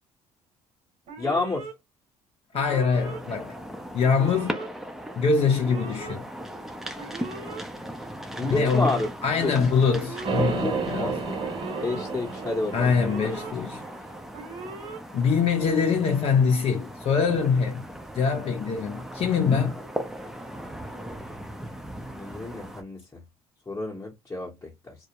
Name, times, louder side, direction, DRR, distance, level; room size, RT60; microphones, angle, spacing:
Alarm, 1.1-1.7 2.5-3.2 4.0-4.7 5.5-6.1 7.0-7.6 8.4-9.1 9.9-10.6 11.4-12.0 12.9-13.5 14.3-15.0, right 3 dB, 70° right, 1.2 m, -39 dB
voice 1, 1.2-1.7 8.3-9.1 9.4-9.5 10.6-11.4 11.8-12.9 22.1-23.2 23.7-24.9, left 3 dB, 20° left, 0.9 m, -30 dB
voice 2, 2.5-3.6 3.9-4.6 5.2-6.3 8.5-11.2 12.7-13.8 15.1-17.8 18.1-19.8, left 5 dB, 50° left, 0.6 m, -24 dB
sound 1, 2.9-22.8, equal, 5° right, 0.5 m, -38 dB
sound 2, 10.2-14.4, right 4 dB, 45° right, 0.9 m, -31 dB
2.3 x 2.0 x 2.8 m
supercardioid pair, 85°, 13 cm